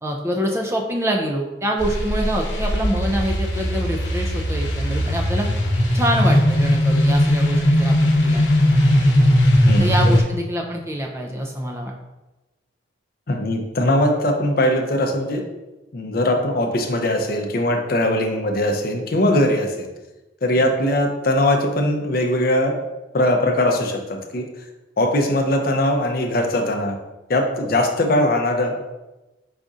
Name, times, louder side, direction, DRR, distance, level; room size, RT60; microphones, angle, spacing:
voice 1, 0.0-5.5 5.9-8.4 9.8-11.9 20.6-20.7, equal, 15° right, 1 dB, 0.4 m, -25 dB
sound 1, 1.8-10.2, equal, 75° left, 0.9 m, -18 dB
voice 2, 13.3-15.4 15.9-19.9 20.4-22.8 23.1-24.5 25.0-26.9 27.3-28.8, left 1 dB, 50° left, 3 dB, 0.5 m, -20 dB
4.9 x 3.9 x 2.4 m, 1.1 s
head